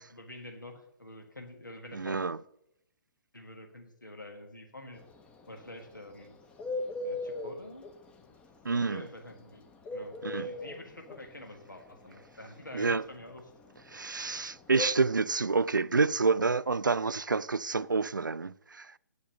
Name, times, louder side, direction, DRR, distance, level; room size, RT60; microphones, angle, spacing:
voice 1, 0.0-2.2 3.3-5.0 5.5-6.4 7.0-7.8 8.3-8.4 8.7-13.4, left 1 dB, 85° left, 1.5 m, -47 dB
voice 2, 1.9-2.4 8.6-9.1 10.2-10.5 12.7-13.0 13.9-18.9, right 4 dB, 85° right, 0.4 m, -28 dB
Bird, 5.0-14.9, left 2 dB, 10° left, 0.6 m, -38 dB
9.0 x 7.1 x 6.5 m
figure-of-eight pair, 130°, 10 cm